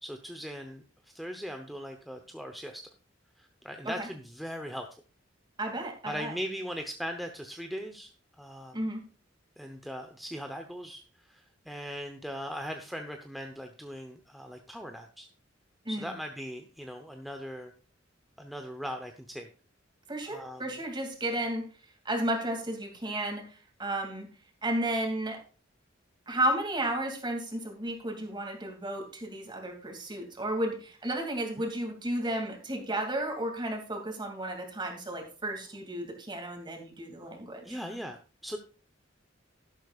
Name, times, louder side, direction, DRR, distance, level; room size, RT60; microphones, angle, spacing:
voice 1, 0.0-2.9 3.4-4.9 6.1-8.1 8.4-8.8 9.6-15.3 15.9-17.7 18.4-19.5 20.2-20.6 31.6-31.7 37.6-38.6, equal, ahead, 4 dB, 0.8 m, -39 dB
voice 2, 5.6-6.3 8.7-9.0 15.8-16.1 20.1-21.7 22.0-24.3 24.6-25.4 26.3-37.8, right 1 dB, 25° right, 3 dB, 2.5 m, -33 dB
12.0 x 12.0 x 2.4 m, 0.36 s
head